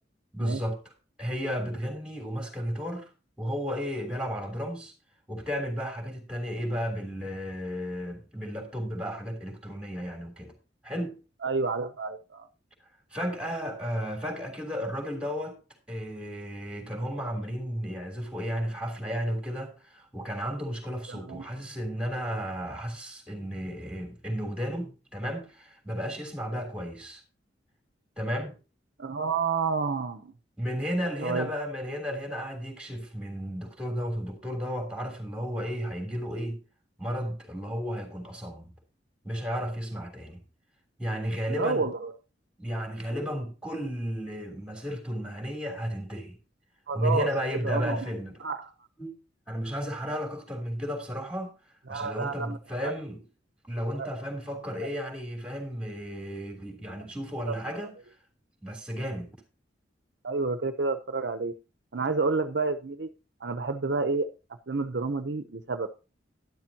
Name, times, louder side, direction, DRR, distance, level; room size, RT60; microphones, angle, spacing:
voice 1, 0.3-0.8 1.2-3.1 3.4-4.9 5.3-10.5 10.8-11.2 13.1-15.6 15.9-27.2 28.2-28.5 30.6-36.6 37.0-38.7 39.2-40.4 41.0-41.9 42.6-46.4 46.9-48.4 49.0-49.2 49.5-51.5 51.9-53.2 53.6-57.9 58.6-59.3, equal, 5° right, 3.2 m, -33 dB
voice 2, 11.4-12.5 21.1-21.4 29.0-30.3 31.2-31.5 41.5-42.1 46.9-47.3 47.6-48.1 48.4-48.7 51.9-52.6 52.8-52.9 54.0-54.1 57.5-57.9 60.2-61.5 61.9-63.1 63.4-64.3 64.7-65.9, right 4 dB, 65° right, 0.8 m, -29 dB
12.0 x 11.0 x 2.8 m
head